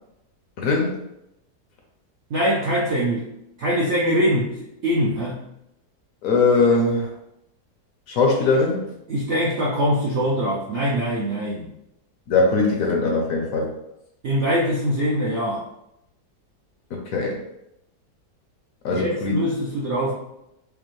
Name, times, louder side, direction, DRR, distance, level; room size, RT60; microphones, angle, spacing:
voice 1, 0.6-1.0 6.2-7.1 8.1-8.9 12.3-13.7 16.9-17.4 18.8-19.4, left 3 dB, 65° left, 0 dB, 0.9 m, -21 dB
voice 2, 2.3-3.2 3.6-4.5 4.8-5.4 9.1-11.7 14.2-15.6 18.9-20.1, equal, 70° right, -4 dB, 0.6 m, -23 dB
5.0 x 2.0 x 3.1 m, 0.84 s
omnidirectional pair, 1.8 m